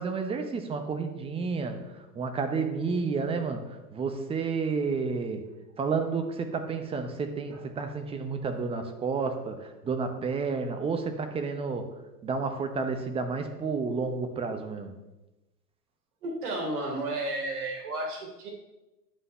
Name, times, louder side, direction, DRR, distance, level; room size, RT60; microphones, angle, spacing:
voice 1, 0.0-1.8 2.2-5.4 5.8-11.9 12.2-14.9, right 4 dB, 10° right, 7 dB, 0.7 m, -31 dB
voice 2, 16.2-18.5, right 2 dB, 65° right, 0 dB, 3.2 m, -32 dB
9.6 x 5.9 x 5.5 m, 1.0 s
hypercardioid pair, 110°, 48 cm